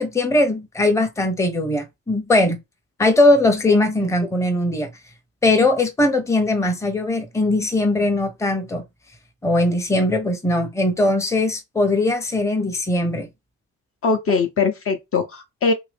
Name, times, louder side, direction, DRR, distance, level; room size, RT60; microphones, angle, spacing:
voice 1, 0.0-2.6 3.0-4.9 5.4-8.8 9.4-13.3, left 2 dB, 10° left, 0.7 m, -20 dB
voice 2, 14.0-15.7, left 4 dB, 50° left, 0.7 m, -21 dB
2.8 x 2.6 x 3.4 m
cardioid pair, 90°, 30 cm